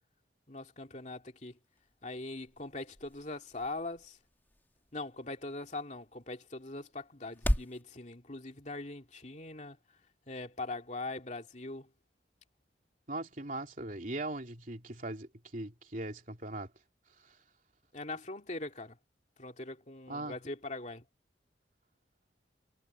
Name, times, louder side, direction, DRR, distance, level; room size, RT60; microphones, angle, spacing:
voice 1, 0.5-1.6 2.0-4.2 4.9-9.8 10.3-11.9 17.9-19.0 19.4-21.0, left 2 dB, 40° left, 2.6 m, -41 dB
sound 1, 1.5-7.8, equal, 10° left, 2.0 m, -39 dB
voice 2, 13.1-16.7 17.2-17.4 20.1-20.3, right 2 dB, 45° right, 3.5 m, -40 dB
head